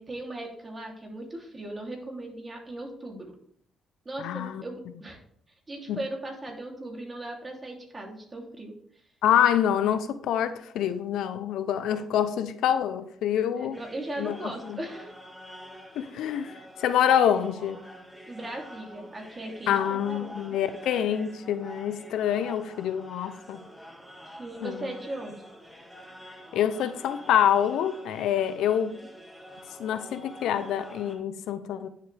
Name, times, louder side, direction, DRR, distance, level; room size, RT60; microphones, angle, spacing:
voice 1, 0.0-3.3 4.0-5.2 5.7-8.7 13.5-15.1 18.3-20.4 24.3-25.4 28.9-29.0, right 1 dB, 25° right, 3.1 m, -38 dB
voice 2, 4.2-4.6 5.9-6.0 9.2-13.8 14.2-14.8 15.9-17.8 19.7-23.6 24.6-24.9 26.5-29.0 29.8-31.9, left 9 dB, 80° left, 0.7 m, -26 dB
sound 1, 13.7-31.2, equal, ahead, 1.9 m, -47 dB
10.0 x 7.5 x 3.5 m
cardioid pair, 90°, 0 cm